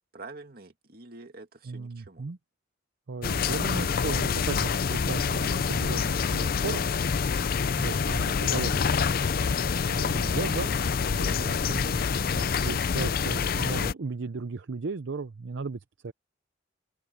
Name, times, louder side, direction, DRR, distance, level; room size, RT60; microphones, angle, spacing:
voice 1, 0.1-2.3, right 3 dB, 50° right, 2.5 m, -46 dB
voice 2, 1.7-2.4 3.1-6.9 7.8-9.1 9.9-10.7 11.1-16.1, right 4 dB, 70° right, 0.6 m, -36 dB
sound 1, 3.2-13.9, left 6 dB, 50° left, 0.5 m, -27 dB
open air
head